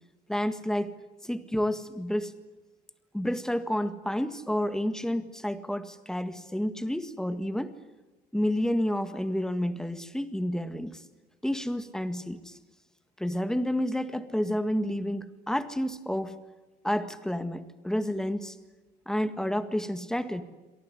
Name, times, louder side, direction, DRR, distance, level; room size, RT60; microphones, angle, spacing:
voice 1, 0.3-0.9 1.2-2.3 3.1-7.8 8.3-11.0 11.4-12.6 13.2-16.4 16.8-18.6 19.1-20.4, equal, 5° left, 11 dB, 1.7 m, -30 dB
26.0 x 19.0 x 9.8 m, 1.2 s
cardioid pair, 110°, 17 cm